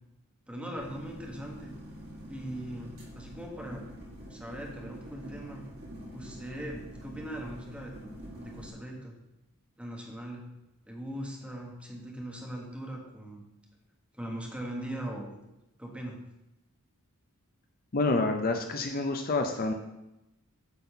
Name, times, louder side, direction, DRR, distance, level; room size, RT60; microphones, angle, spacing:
voice 1, 0.5-1.7 2.3-3.8 4.3-5.6 6.1-7.9 8.4-9.1 9.8-10.4 10.9-13.4 14.1-15.4 15.8-16.2, right 1 dB, 5° right, 0 dB, 1.5 m, -40 dB
sound 1, 0.7-8.7, equal, 45° right, 2.9 m, -46 dB
voice 2, 17.9-19.7, left 3 dB, 40° left, 5 dB, 0.6 m, -28 dB
8.3 x 4.2 x 6.7 m, 0.92 s
head